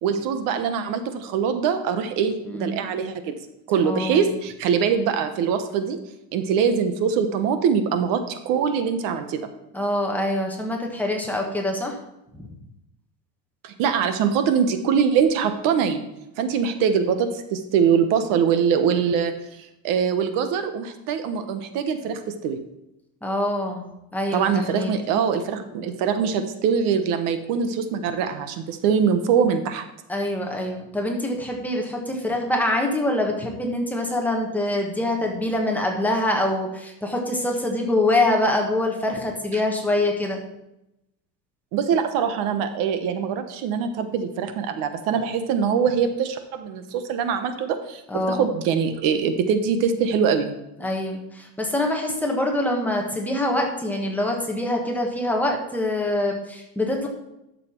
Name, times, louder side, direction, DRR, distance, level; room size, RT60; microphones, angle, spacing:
voice 1, 0.0-3.3 3.7-6.0 6.3-9.5 13.6-16.0 16.4-22.6 24.3-29.8 39.5-39.6 41.7-50.5, right 7 dB, 65° right, 8 dB, 1.2 m, -23 dB
voice 2, 2.5-2.9 3.8-4.2 9.7-12.0 12.3-12.6 23.2-23.9 24.1-24.9 30.1-40.4 48.1-48.5 50.8-57.1, left 1 dB, 5° left, 0 dB, 1.5 m, -25 dB
11.0 x 6.9 x 4.5 m, 0.88 s
cardioid pair, 150°, 36 cm